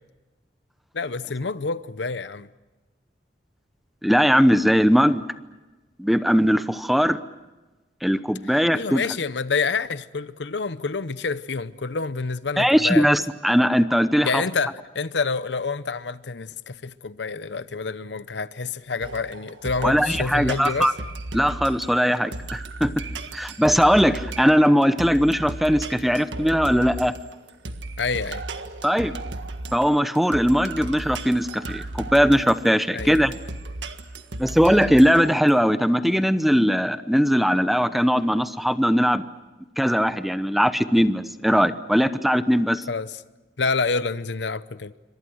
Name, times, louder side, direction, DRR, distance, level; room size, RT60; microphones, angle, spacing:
voice 1, 0.9-2.5 8.5-13.1 14.2-20.9 28.0-28.4 32.9-33.2 42.9-43.2 43.6-44.9, left 4 dB, 75° left, 0.8 m, -28 dB
voice 2, 4.0-5.2 6.0-7.2 8.0-9.0 12.6-14.4 19.8-20.9 21.3-22.9 23.3-27.1 28.8-29.1 29.7-31.8 32.1-33.4 34.4-39.3 39.8-42.8, equal, ahead, 0.8 m, -20 dB
sound 1, 19.0-35.5, right 2 dB, 90° right, 1.7 m, -35 dB
27.5 x 25.0 x 6.4 m
head